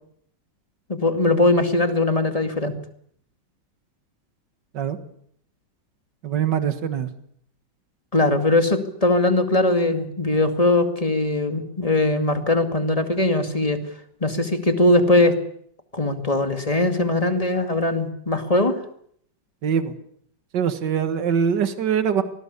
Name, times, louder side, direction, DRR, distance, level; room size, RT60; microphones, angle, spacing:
voice 1, 0.9-2.7 8.1-13.8 14.2-15.4 15.9-18.8, left 2 dB, 20° left, 7 dB, 2.3 m, -20 dB
voice 2, 6.2-7.1 19.6-19.9 20.5-22.2, right 7 dB, 70° right, 10 dB, 2.2 m, -23 dB
25.5 x 19.0 x 8.5 m, 0.67 s
omnidirectional pair, 2.0 m